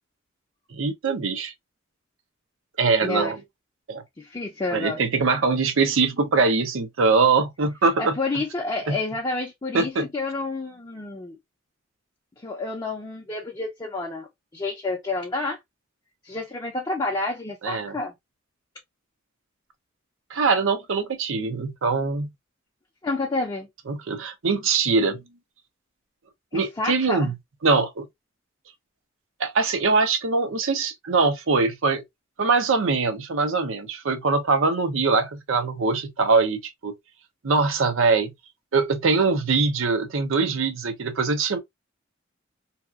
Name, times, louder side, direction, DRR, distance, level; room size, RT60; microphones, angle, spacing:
voice 1, 0.7-1.5 2.8-3.4 3.9-4.0 4.7-8.2 8.9-9.0 9.7-10.1 17.6-18.0 20.3-22.3 23.9-25.2 26.5-27.3 27.6-28.1 29.4-32.0 32.4-36.9 37.4-38.3 38.7-41.6, right 4 dB, 70° right, 0.6 m, -22 dB
voice 2, 3.0-3.3 4.2-5.0 8.0-11.4 12.4-15.6 16.2-18.1 23.0-23.7 26.5-27.3, left 2 dB, 20° left, 0.5 m, -29 dB
2.8 x 2.3 x 2.3 m
head